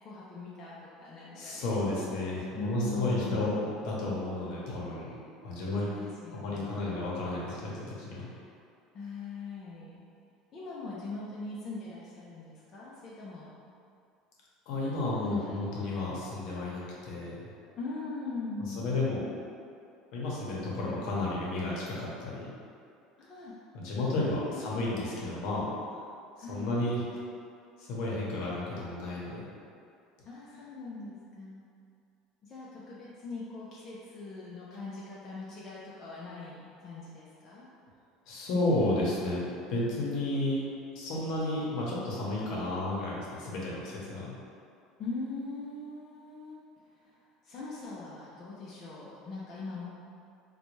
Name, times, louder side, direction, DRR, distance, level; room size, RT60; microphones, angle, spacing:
voice 1, 0.0-1.8 2.6-3.5 5.8-7.1 8.2-8.4 8.9-10.0 10.5-13.5 15.2-15.9 17.8-19.0 23.2-23.5 24.4-24.8 26.4-26.8 30.3-31.6 32.4-37.7 45.0-46.6 46.9-47.1 47.4-49.8, left 3 dB, 30° left, -8 dB, 0.5 m, -41 dB
voice 2, 1.4-5.2 5.4-5.9 6.3-8.3 14.7-17.4 18.8-19.2 20.1-22.5 23.7-25.6 26.5-27.0 27.8-29.4 38.3-40.6 40.9-44.3, left 2 dB, 60° left, -5 dB, 0.9 m, -32 dB
4.0 x 2.2 x 3.0 m, 2.4 s
cardioid pair, 145°, 0 cm